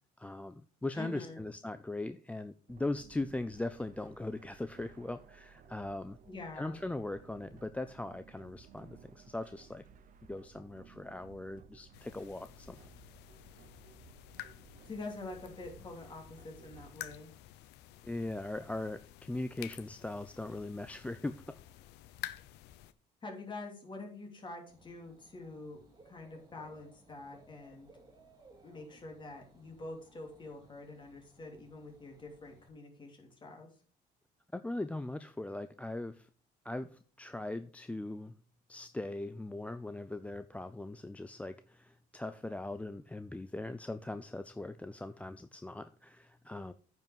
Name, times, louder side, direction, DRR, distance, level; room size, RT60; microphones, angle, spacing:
voice 1, 0.2-6.2 6.5-9.8 10.3-12.8 18.0-21.3 34.5-36.3 36.6-38.3 38.7-46.7, left 2 dB, 10° left, 10 dB, 0.4 m, -40 dB
voice 2, 0.9-1.4 6.3-6.8 14.8-17.3 23.2-27.9 28.6-33.7, left 2 dB, 30° left, 1 dB, 3.0 m, -46 dB
sound 1, 2.7-17.1, right 7 dB, 50° right, 0.9 m, -58 dB
sound 2, 11.9-22.9, left 14 dB, 90° left, 0.7 m, -50 dB
Dog / Bird, 24.7-32.7, right 2 dB, 25° right, 2.2 m, -62 dB
9.2 x 5.6 x 5.4 m, 0.43 s
cardioid pair, 110°, 17 cm